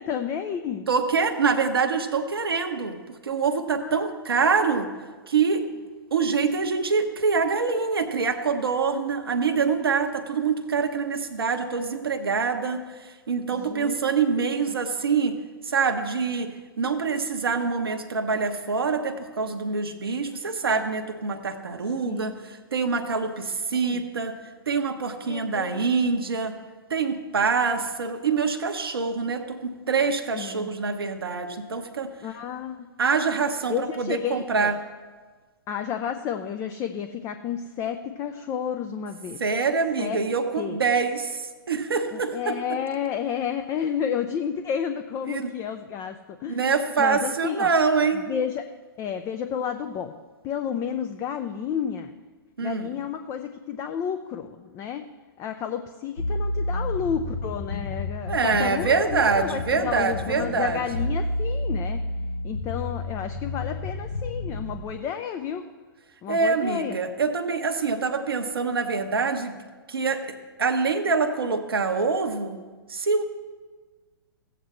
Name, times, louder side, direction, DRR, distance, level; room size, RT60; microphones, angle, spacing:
voice 1, 0.0-0.9 3.8-4.1 9.6-9.7 13.6-14.0 14.7-14.8 22.0-22.4 23.7-24.0 25.2-25.8 30.3-30.7 32.2-32.9 33.7-34.7 35.7-39.4 40.0-40.2 40.6-40.8 42.1-46.6 47.0-47.7 48.1-48.7 49.0-50.1 50.4-52.1 52.6-55.0 55.4-62.0 62.4-65.6 66.2-67.0, left 8 dB, 25° left, 8 dB, 0.5 m, -31 dB
voice 2, 0.9-4.9 5.3-5.6 6.1-15.4 15.6-24.4 24.7-26.5 26.9-32.1 33.0-34.7 39.4-42.6 45.3-45.5 46.5-48.3 52.6-52.9 58.3-60.8 66.3-69.6 69.9-70.2 70.6-72.6 72.9-73.2, right 5 dB, 75° right, 6 dB, 1.0 m, -25 dB
sound 1, 56.2-64.8, left 2 dB, 75° left, 1.7 m, -31 dB
16.0 x 7.9 x 3.2 m, 1.4 s
figure-of-eight pair, 110°, 13 cm